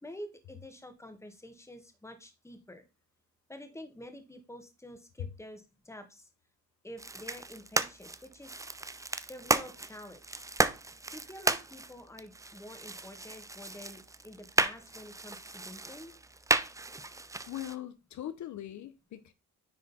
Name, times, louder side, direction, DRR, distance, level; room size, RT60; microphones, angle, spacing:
voice 1, 0.0-2.8 3.5-6.3 6.8-8.6 9.3-10.5 11.1-16.1, left 1 dB, 10° left, 1.6 m, -48 dB
sound 1, 7.0-17.8, right 2 dB, 10° right, 0.5 m, -34 dB
voice 2, 17.5-19.3, left 11 dB, 70° left, 0.8 m, -40 dB
9.9 x 3.8 x 4.1 m
cardioid pair, 90°, 30 cm